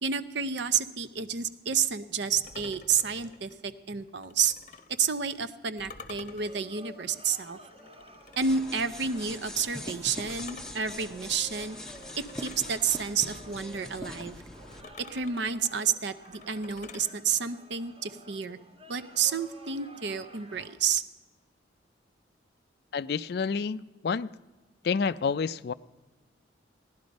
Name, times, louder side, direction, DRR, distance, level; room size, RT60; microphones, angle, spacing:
voice 1, 0.0-4.5 5.0-7.6 8.4-11.8 12.4-14.4 15.0-18.6 18.9-21.0, right 6 dB, 65° right, 12 dB, 0.6 m, -30 dB
sound 1, 2.4-5.0 5.8-8.8 10.3-12.7 14.7-17.1, left 4 dB, 40° left, 0.8 m, -50 dB
sound 2, 6.3-20.8, equal, 30° right, 1.3 m, -52 dB
sound 3, 8.4-14.8, left 1 dB, 5° left, 0.6 m, -42 dB
voice 2, 22.9-24.3 24.8-25.7, left 5 dB, 55° left, 17 dB, 0.3 m, -29 dB
17.0 x 11.0 x 5.2 m, 1.2 s
head